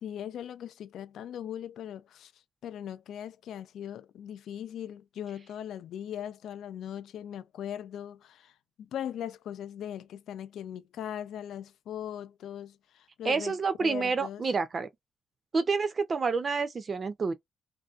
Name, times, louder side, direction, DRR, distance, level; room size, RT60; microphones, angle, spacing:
voice 1, 0.0-14.4, left 10 dB, 75° left, 0.4 m, -40 dB
voice 2, 13.2-14.9 15.5-17.3, right 4 dB, 40° right, 0.4 m, -28 dB
2.6 x 2.1 x 2.4 m
cardioid pair, 90°, 0 cm